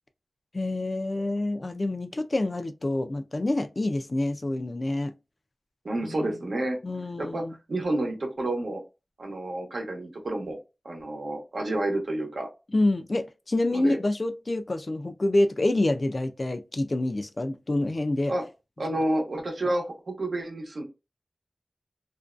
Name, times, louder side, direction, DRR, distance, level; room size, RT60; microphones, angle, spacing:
voice 1, 0.5-5.1 6.0-6.5 6.8-7.6 12.7-18.3, left 2 dB, 50° left, 0.4 m, -27 dB
voice 2, 5.8-6.8 7.2-7.4 7.7-8.8 9.2-10.6 10.8-12.5 13.7-14.0 18.3-18.4 18.8-20.8, right 1 dB, 85° right, 0.8 m, -29 dB
2.5 x 2.2 x 2.4 m
wide cardioid pair, 60°, 0 cm